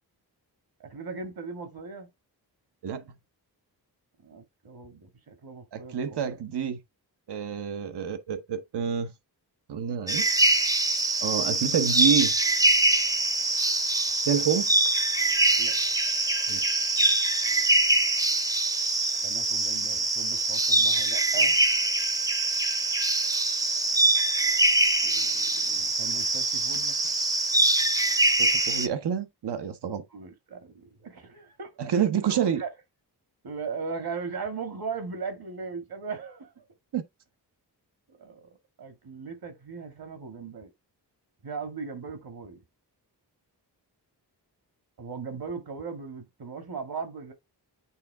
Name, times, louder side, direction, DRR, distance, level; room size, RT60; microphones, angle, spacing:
voice 1, 0.8-2.1 4.2-6.4 15.6-15.8 19.2-21.6 25.0-27.0 30.1-32.7 33.4-36.6 38.1-38.5 38.8-40.7 41.4-42.6 45.0-47.3, right 5 dB, 65° right, 2.0 m, -38 dB
voice 2, 5.7-6.8 7.3-9.1 9.7-10.3 11.2-12.3 14.3-14.7 16.5-16.8 28.4-30.0 31.8-32.6 36.9-37.0, right 8 dB, 85° right, 1.1 m, -28 dB
sound 1, 10.1-28.9, right 2 dB, 10° right, 0.6 m, -24 dB
8.6 x 3.7 x 3.4 m
wide cardioid pair, 125°, 40 cm